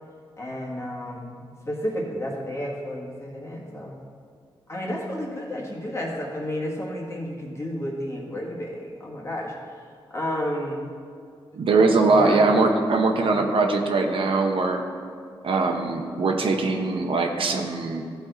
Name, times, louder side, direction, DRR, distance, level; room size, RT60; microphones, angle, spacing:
voice 1, 0.4-4.0 4.7-11.0 12.0-12.6 13.2-13.5, equal, 30° left, -2 dB, 1.5 m, -32 dB
voice 2, 11.5-14.8 15.4-18.0, right 3 dB, 75° right, 3 dB, 0.8 m, -21 dB
13.5 x 4.6 x 4.0 m, 2.3 s
wide cardioid pair, 120°, 9 cm